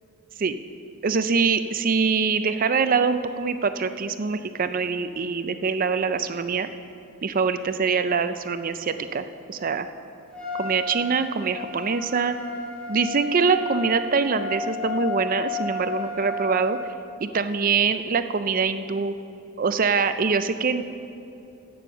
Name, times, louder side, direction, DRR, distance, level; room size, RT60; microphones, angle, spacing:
voice 1, 1.0-6.7 7.2-9.9 10.6-12.4 12.9-16.8 17.2-19.1 19.6-20.9, right 5 dB, 40° right, 11 dB, 0.4 m, -24 dB
Trumpet, 10.3-16.9, left 2 dB, 5° left, 1.9 m, -32 dB
11.5 x 8.7 x 7.1 m, 2.8 s
head